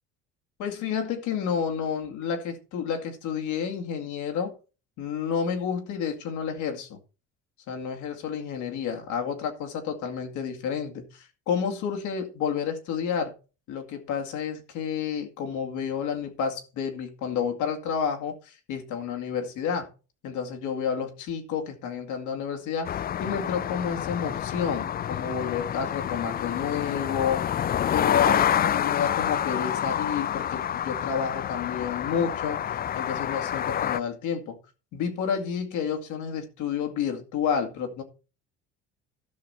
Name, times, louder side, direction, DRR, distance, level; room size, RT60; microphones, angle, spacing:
voice 1, 0.6-4.6 5.0-7.0 7.7-13.3 13.7-19.9 20.2-27.4 27.9-34.6 34.9-38.0, left 7 dB, 70° left, 2.3 m, -30 dB
sound 1, 22.8-34.0, left 10 dB, 30° left, 0.4 m, -28 dB
13.0 x 6.0 x 4.2 m
supercardioid pair, 75°, 31 cm